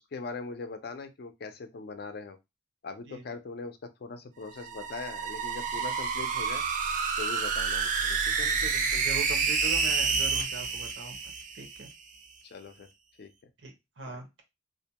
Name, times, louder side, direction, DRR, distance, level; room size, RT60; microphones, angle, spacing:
voice 1, 0.0-2.4 2.8-6.6 7.2-8.5 12.4-12.9 13.2-13.3 14.1-14.2, left 4 dB, 55° left, 8 dB, 0.4 m, -41 dB
sound 1, 4.4-11.9, right 5 dB, 45° right, 0.4 m, -29 dB
voice 2, 8.4-11.2 11.5-11.9 13.6-14.4, right 3 dB, 85° right, 3 dB, 0.8 m, -41 dB
2.5 x 2.1 x 2.8 m, 0.22 s
head